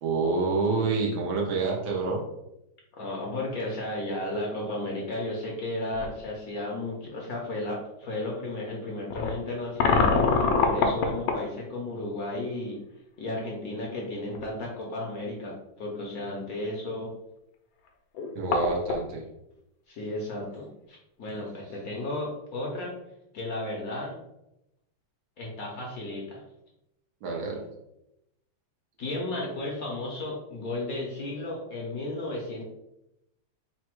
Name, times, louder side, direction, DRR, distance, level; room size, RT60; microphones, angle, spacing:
voice 1, 0.0-2.2 18.3-19.2 27.2-27.6, right 3 dB, 80° right, -1 dB, 1.7 m, -27 dB
voice 2, 3.0-12.8 13.2-17.1 19.9-23.0 23.3-24.2 25.4-26.4 29.0-32.6, left 2 dB, 60° left, -2 dB, 1.0 m, -34 dB
sound 1, 5.9-6.1 6.9-7.0 9.1-11.5 14.0-14.1 14.3-14.4 17.9-18.0 18.1-19.0, left 4 dB, 80° left, 1.4 m, -24 dB
4.0 x 2.2 x 4.5 m, 0.85 s
omnidirectional pair, 2.2 m